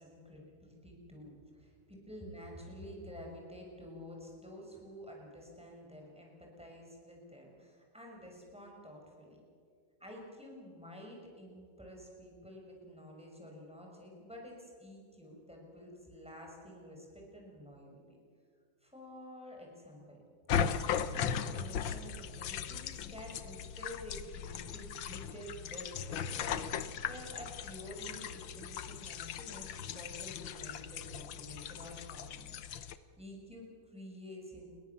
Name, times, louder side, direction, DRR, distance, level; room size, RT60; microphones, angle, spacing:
voice 1, 0.0-9.4 10.0-18.0 18.8-20.2 20.5-32.5 33.2-34.7, equal, 5° right, -1 dB, 6.2 m, -50 dB
sound 1, 20.5-33.0, left 8 dB, 80° left, 1.7 m, -38 dB
29.5 x 22.0 x 7.2 m, 2.2 s
omnidirectional pair, 2.1 m